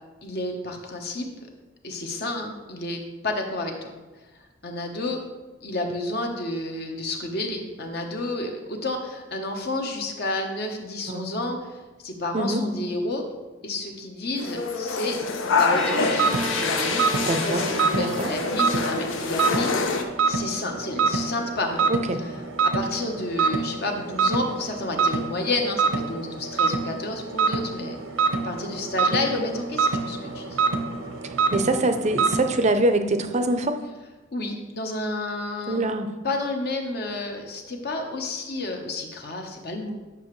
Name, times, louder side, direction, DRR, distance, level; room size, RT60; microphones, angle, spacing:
voice 1, 0.2-1.3 1.8-3.9 4.6-5.2 5.6-13.2 13.6-15.2 15.6-17.2 17.5-21.9 22.2-22.3 22.6-30.6 34.3-35.9 36.2-39.9, left 2 dB, 50° left, 3 dB, 1.0 m, -30 dB
sound 1, 14.4-20.0, left 4 dB, 70° left, 0.7 m, -26 dB
sound 2, 15.6-20.5, equal, ahead, 0.7 m, -36 dB
sound 3, 16.2-32.7, right 4 dB, 85° right, 0.8 m, -26 dB
voice 2, 17.3-17.7 17.9-18.3 21.9-22.2 31.5-33.8 35.7-36.1, right 2 dB, 35° right, 8 dB, 0.5 m, -24 dB
9.3 x 5.8 x 3.2 m, 1.2 s
head